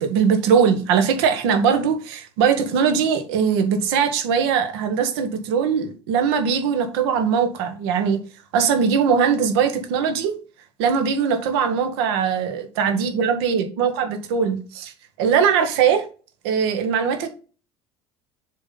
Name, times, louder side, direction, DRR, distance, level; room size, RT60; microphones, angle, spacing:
voice 1, 0.0-8.2 8.5-10.3 10.8-14.9 15.2-16.0 16.4-17.3, right 6 dB, 65° right, 1.3 m, -20 dB
6.9 x 4.3 x 3.9 m
figure-of-eight pair, 65°, 14 cm